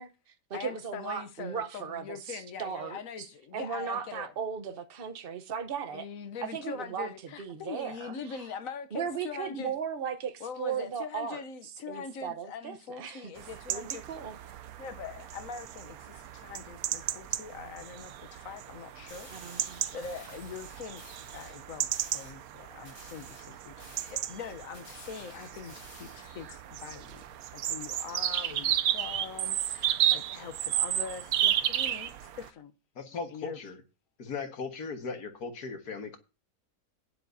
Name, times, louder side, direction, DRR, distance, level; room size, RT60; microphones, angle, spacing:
voice 1, 0.0-6.1 6.4-7.1 7.4-8.5 8.9-13.3 13.7-14.4 19.3-19.8, right 7 dB, 40° right, 1.0 m, -37 dB
voice 2, 0.5-4.3 5.9-9.7 10.4-14.0 14.8-19.3 19.9-21.0 21.3-27.2 27.5-32.7 33.3-33.6, left 6 dB, 65° left, 1.2 m, -42 dB
sound 1, 13.4-32.5, right 11 dB, 75° right, 1.1 m, -33 dB
sound 2, 19.1-21.6 21.9-22.4 22.8-26.5, equal, 35° left, 7.9 m, -52 dB
voice 3, 33.0-33.8 34.2-36.2, left 4 dB, 85° left, 2.1 m, -38 dB
15.0 x 10.0 x 2.7 m
omnidirectional pair, 1.6 m